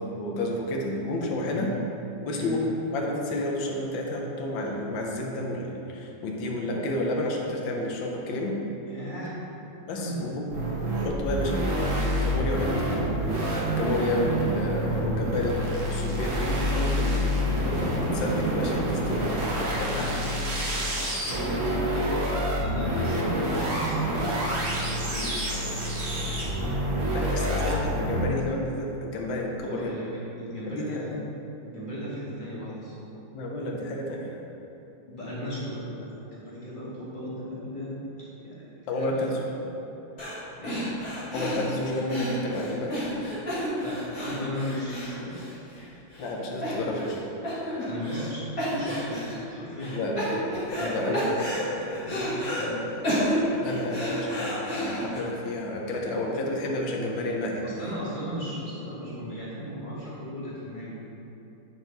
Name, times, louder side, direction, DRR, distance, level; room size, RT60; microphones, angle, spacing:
voice 1, 0.1-1.7 2.2-2.6 2.9-8.6 9.9-10.3 10.9-15.6 15.9-17.3 17.6-20.1 27.1-30.0 30.6-31.0 33.3-34.4 38.9-39.4 41.3-43.0 46.2-47.3 49.9-50.3 50.9-51.2 53.6-57.7, left 1 dB, 85° left, -1 dB, 1.6 m, -31 dB
voice 2, 8.9-9.3 9.9-10.2 16.9-17.5 19.7-20.6 21.2-24.4 24.7-25.4 29.6-31.3 31.6-32.9 35.1-39.7 40.6-40.8 43.8-45.5 47.8-50.2 50.7-53.2 57.6-61.0, equal, 25° left, -9 dB, 1.7 m, -36 dB
sound 1, 10.5-28.2, equal, 85° right, 2.1 m, -27 dB
sound 2, 40.2-40.4 40.6-45.8 46.1-46.3 46.6-47.2 47.4-48.3 48.6-49.4 49.8-50.9 51.1-52.7 53.0-55.2, equal, 55° left, 2.3 m, -31 dB
9.1 x 4.5 x 3.9 m, 3.0 s
omnidirectional pair, 2.1 m